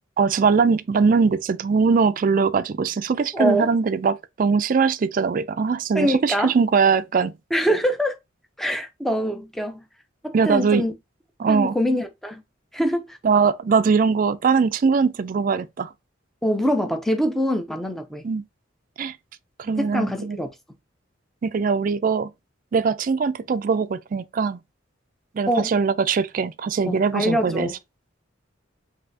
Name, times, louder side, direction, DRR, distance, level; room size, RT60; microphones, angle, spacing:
voice 1, 0.2-7.3 10.3-10.8 11.4-11.7 13.2-15.9 18.2-18.4 19.0-19.1 19.6-20.4 21.4-22.3 22.7-24.6 25.3-27.7, right 5 dB, 45° right, 0.3 m, -21 dB
voice 2, 3.3-3.7 5.9-6.5 7.5-8.2 8.6-9.8 10.2-10.9 11.5-12.4 12.7-13.2 16.4-18.2 19.7-20.5 25.5-25.7 26.9-27.7, equal, ahead, 0.6 m, -24 dB
5.4 x 2.7 x 2.7 m
head